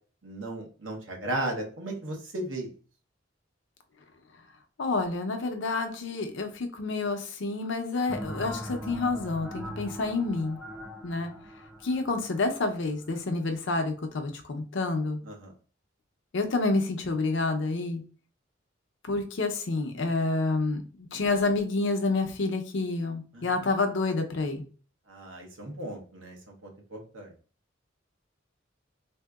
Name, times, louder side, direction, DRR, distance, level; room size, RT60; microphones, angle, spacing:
voice 1, 0.2-2.7 15.3-15.5 23.3-23.5 25.1-27.3, right 1 dB, 90° right, 1 dB, 0.9 m, -36 dB
voice 2, 4.8-10.6 11.0-11.3 11.8-15.2 16.3-18.0 19.1-24.6, left 3 dB, 65° left, 5 dB, 0.6 m, -28 dB
sound 1, 8.1-13.4, equal, 5° right, 0.4 m, -41 dB
3.6 x 2.7 x 2.3 m, 0.38 s
head